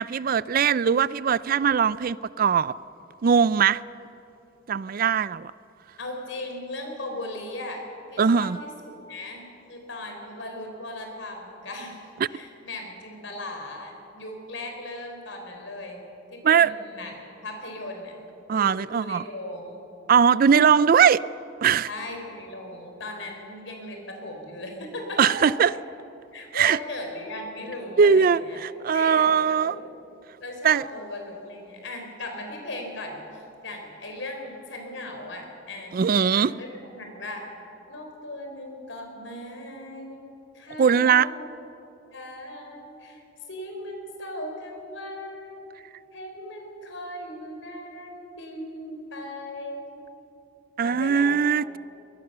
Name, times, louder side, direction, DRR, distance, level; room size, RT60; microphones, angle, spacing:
voice 1, 0.0-2.7 3.2-3.8 4.7-5.5 8.2-8.6 16.4-16.7 18.5-19.2 20.1-21.2 21.6-21.9 25.2-25.7 26.5-26.8 28.0-29.8 30.6-30.8 35.9-36.5 40.8-41.3 50.8-51.8, right 7 dB, 50° right, 0.4 m, -20 dB
voice 2, 6.0-12.0 12.3-17.1 17.4-18.1 18.5-19.8 21.9-25.4 25.7-25.8 26.3-28.6 28.9-29.8 30.4-35.9 36.3-36.7 36.9-37.5 37.9-41.3 42.1-43.2 43.5-45.7 46.1-50.0 50.8-51.4, left 1 dB, 80° left, 4.2 m, -38 dB
23.5 x 19.5 x 6.8 m
head